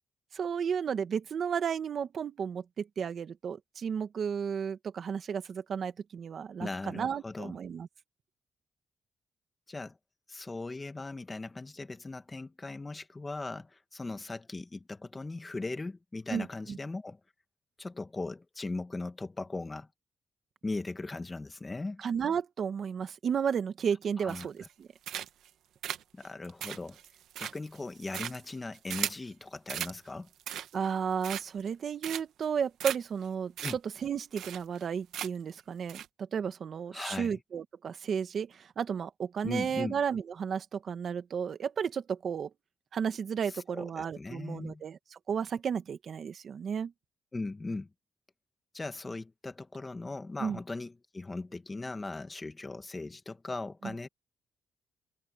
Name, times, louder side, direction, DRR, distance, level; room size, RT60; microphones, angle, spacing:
voice 1, 0.3-7.9 16.3-16.8 22.0-24.9 30.7-36.0 36.3-42.5 42.9-46.9 50.4-50.6, right 7 dB, 55° right, 1.6 m, -33 dB
voice 2, 6.6-7.5 9.7-10.0 10.3-17.2 17.8-19.9 20.6-22.0 24.2-24.5 26.1-27.0 27.4-30.3 33.6-33.8 36.9-37.4 39.4-40.0 43.5-44.8 47.3-47.9 48.7-54.1, left 3 dB, 20° left, 1.8 m, -39 dB
sound 1, 24.3-24.7 25.0-25.5 25.8-29.3 29.7-30.0 30.3-30.9 31.2-31.7 32.0-32.4 32.8-33.0 33.2-33.3 33.6-33.7 34.0-34.1 34.4-34.8 35.1-35.5 35.9-36.1, right 11 dB, 85° right, 1.2 m, -37 dB
cardioid pair, 105°, 0 cm